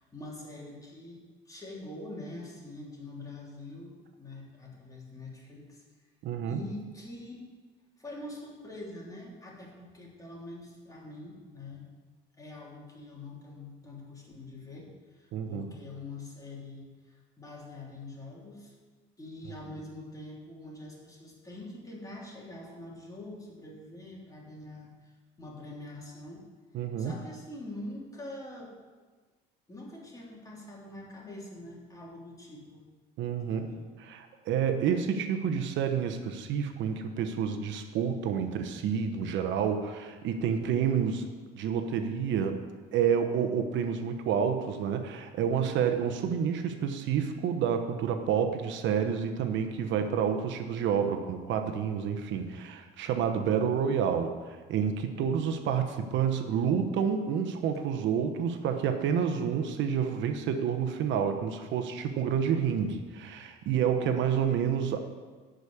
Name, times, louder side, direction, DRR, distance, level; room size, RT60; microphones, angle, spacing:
voice 1, 0.0-5.8 6.5-7.4 8.0-11.9 12.4-18.7 19.2-25.1 25.4-26.4 27.0-28.7 29.7-32.8 33.5-33.8, left 2 dB, 15° left, -3 dB, 3.1 m, -44 dB
voice 2, 6.2-6.6 15.3-15.6 26.7-27.1 33.2-33.7 34.0-41.3 41.5-42.6 42.9-65.0, right 7 dB, 70° right, 7 dB, 1.0 m, -29 dB
11.0 x 5.2 x 8.5 m, 1.4 s
cardioid pair, 110°, 20 cm